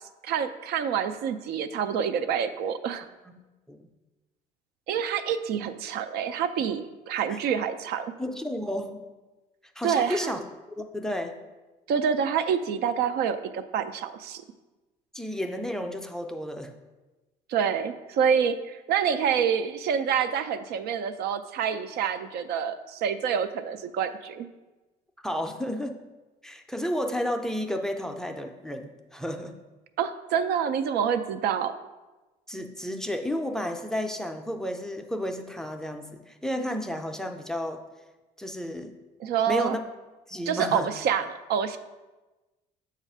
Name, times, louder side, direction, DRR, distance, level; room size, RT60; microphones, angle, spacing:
voice 1, 0.2-3.1 4.9-8.1 9.8-10.3 11.9-14.4 17.5-24.5 30.0-31.7 39.2-39.8 40.5-41.8, right 7 dB, 75° right, 10 dB, 0.4 m, -27 dB
voice 2, 8.2-9.0 9.8-10.4 10.8-11.4 15.1-16.7 25.2-26.0 26.4-29.6 32.5-37.8 38.4-39.0 39.5-39.8 40.3-40.9, equal, 5° left, 5 dB, 0.4 m, -32 dB
7.0 x 2.4 x 5.4 m, 1.1 s
cardioid pair, 110°, 17 cm